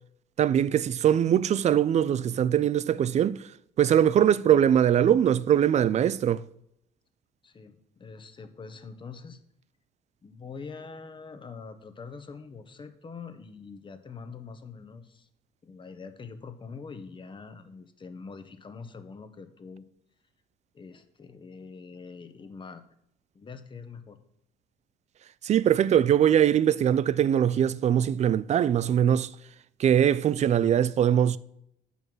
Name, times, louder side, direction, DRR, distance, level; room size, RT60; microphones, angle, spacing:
voice 1, 0.4-3.4 3.8-6.4 25.4-29.3 29.8-31.4, right 9 dB, 40° right, 0.4 m, -22 dB
voice 2, 7.4-7.7 8.0-9.4 10.2-15.3 15.6-19.8 20.7-22.8 23.3-24.2, left 5 dB, 30° left, 1.1 m, -44 dB
9.0 x 5.6 x 6.2 m
cardioid pair, 110°, 17 cm